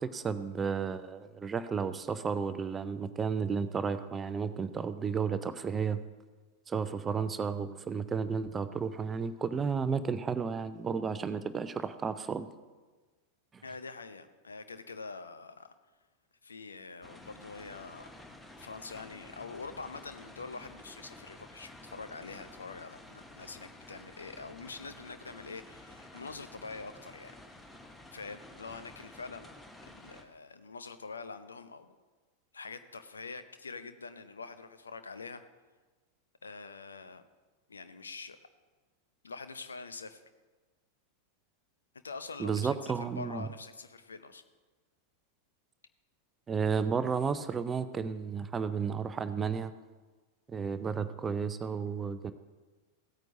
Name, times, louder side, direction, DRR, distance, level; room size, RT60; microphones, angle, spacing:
voice 1, 0.0-6.0 6.7-12.5 13.5-13.6 42.4-43.5 46.5-49.7 50.5-52.3, right 6 dB, 20° right, 12 dB, 0.5 m, -32 dB
voice 2, 13.6-15.7 16.4-18.1 18.6-27.3 28.1-29.5 29.8-31.9 32.5-35.4 36.4-37.2 37.7-38.4 39.2-40.2 42.0-44.4, left 4 dB, 75° left, 11 dB, 0.6 m, -45 dB
sound 1, 17.0-30.2, left 1 dB, 10° left, 1.1 m, -52 dB
16.0 x 9.0 x 2.7 m, 1.3 s
figure-of-eight pair, 90°, 0 cm